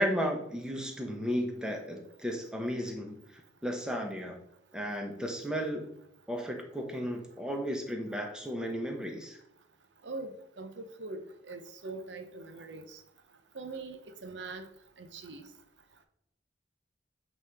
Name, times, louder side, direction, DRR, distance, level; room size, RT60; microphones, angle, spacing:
voice 1, 0.0-4.4 4.7-5.9 6.3-9.4, equal, 5° right, 2 dB, 0.9 m, -34 dB
voice 2, 10.0-13.0 13.5-14.7 15.0-15.5, right 3 dB, 90° right, 7 dB, 0.8 m, -42 dB
8.4 x 3.2 x 3.5 m, 0.79 s
head